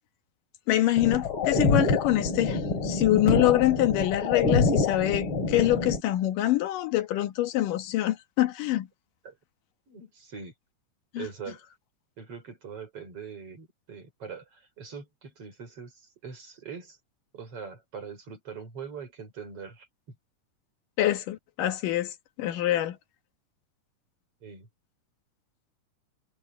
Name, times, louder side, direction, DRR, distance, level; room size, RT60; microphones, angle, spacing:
voice 1, 0.7-8.9 11.1-11.3 21.0-23.0, left 14 dB, 85° left, 2.9 m, -25 dB
sound 1, 1.0-6.0, left 3 dB, 40° left, 3.9 m, -26 dB
voice 2, 9.9-10.5 11.2-11.6 12.2-17.0 17.3-20.2 24.4-24.7, right 6 dB, 45° right, 5.8 m, -42 dB
omnidirectional pair, 3.7 m